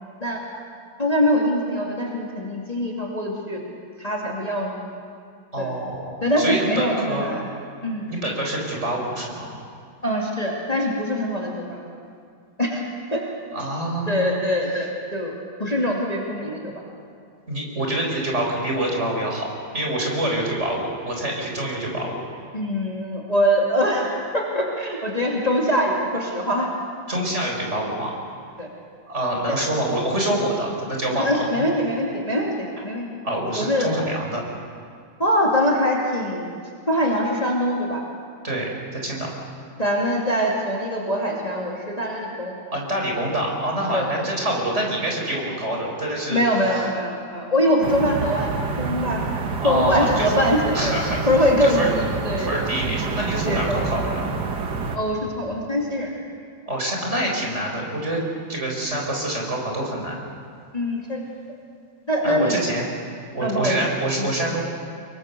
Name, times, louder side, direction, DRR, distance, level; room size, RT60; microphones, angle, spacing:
voice 1, 1.0-3.6 4.0-4.8 5.6-5.7 6.2-7.4 7.8-8.0 10.0-11.9 12.6-12.8 13.1-13.2 14.1-15.3 15.6-16.6 22.5-26.7 28.6-28.7 29.5-29.6 31.2-33.1 33.6-33.9 35.2-36.5 36.9-38.0 39.8-42.5 43.9-44.1 46.3-48.5 48.8-49.2 49.6-51.0 51.3-52.5 53.5-53.9 54.9-56.1 60.7-61.2 62.1-62.6 63.4-63.8 64.2-64.3, equal, 20° left, -2 dB, 2.6 m, -23 dB
voice 2, 5.5-7.3 8.1-9.6 13.5-14.4 17.5-22.2 27.1-28.2 29.1-31.3 33.2-34.4 38.4-39.3 42.7-46.4 46.7-46.8 49.6-50.3 50.7-51.3 51.6-51.9 52.4-54.3 56.7-58.2 58.5-60.2 62.2-62.8 63.3-64.6, right 1 dB, 35° right, -1 dB, 4.7 m, -26 dB
sound 1, 47.8-55.0, right 4 dB, 65° right, 2.0 m, -28 dB
23.5 x 23.0 x 6.8 m, 2.3 s
omnidirectional pair, 2.0 m